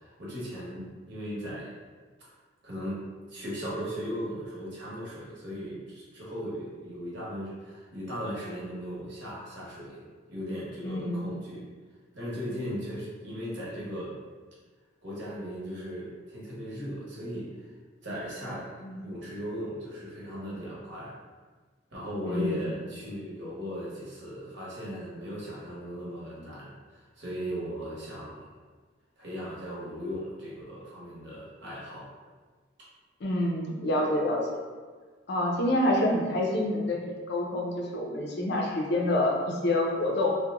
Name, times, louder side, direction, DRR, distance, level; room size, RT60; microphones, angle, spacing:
voice 1, 0.0-1.7 2.2-2.3 2.6-3.0 3.3-10.0 10.3-11.7 12.1-14.1 15.0-17.5 18.0-18.7 19.0-21.1 21.9-28.5 29.2-32.1, equal, 55° right, -6 dB, 1.0 m, -37 dB
voice 2, 10.8-11.3 18.8-19.0 22.3-22.6 33.2-34.6 35.3-40.3, left 1 dB, 55° left, -1 dB, 0.5 m, -27 dB
2.8 x 2.1 x 3.5 m, 1.4 s
head